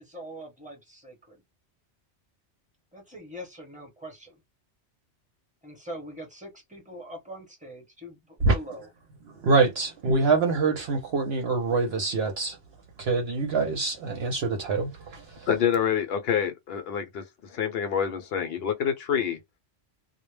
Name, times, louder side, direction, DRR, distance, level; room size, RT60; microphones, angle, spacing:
voice 1, 0.0-1.4 2.9-4.4 5.6-8.9, equal, 5° right, 0.9 m, -43 dB
voice 2, 9.4-12.6 13.0-15.5, right 3 dB, 65° right, 0.8 m, -25 dB
voice 3, 15.5-19.4, left 8 dB, 65° left, 0.8 m, -27 dB
2.2 x 2.0 x 3.1 m
omnidirectional pair, 1.2 m